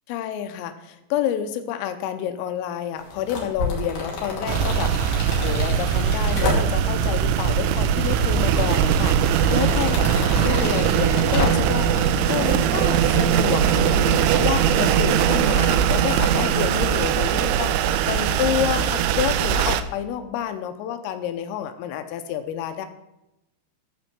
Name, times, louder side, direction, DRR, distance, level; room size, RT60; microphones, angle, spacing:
voice 1, 0.1-22.9, left 10 dB, 90° left, 8 dB, 3.4 m, -29 dB
sound 1, 3.0-7.0 7.5-8.2 8.5-12.1 12.4-16.4, left 2 dB, 45° left, 3.5 m, -31 dB
sound 2, 4.5-19.8, right 8 dB, 80° right, 2.9 m, -21 dB
15.0 x 5.3 x 7.4 m, 0.91 s
omnidirectional pair, 5.8 m